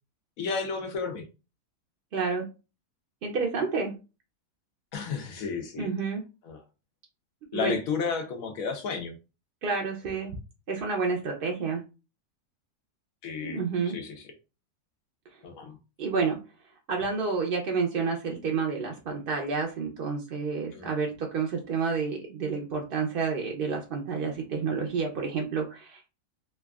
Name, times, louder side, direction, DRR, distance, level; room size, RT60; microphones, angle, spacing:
voice 1, 0.4-1.2 4.9-5.9 6.4-6.6 7.5-9.1 13.2-14.3 15.4-15.8 20.7-20.9, left 5 dB, 80° left, 4 dB, 1.1 m, -32 dB
voice 2, 2.1-2.4 3.2-3.9 5.8-6.2 7.5-7.8 9.6-10.3 10.7-11.8 13.4-14.0 16.0-16.4 16.9-26.2, right 5 dB, 60° right, 0 dB, 0.6 m, -29 dB
3.2 x 2.4 x 2.3 m, 0.30 s
omnidirectional pair, 1.4 m